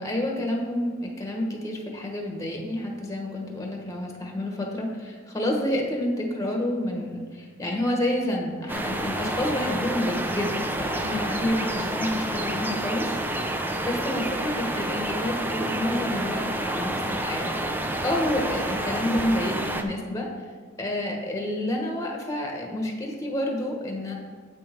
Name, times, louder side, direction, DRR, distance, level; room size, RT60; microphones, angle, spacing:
voice 1, 0.0-13.4 13.8-17.5 18.0-20.3 20.8-24.2, left 1 dB, 15° left, 1 dB, 1.2 m, -29 dB
sound 1, 8.7-19.8, right 1 dB, 10° right, 0.5 m, -29 dB
8.4 x 6.3 x 4.5 m, 1.5 s
head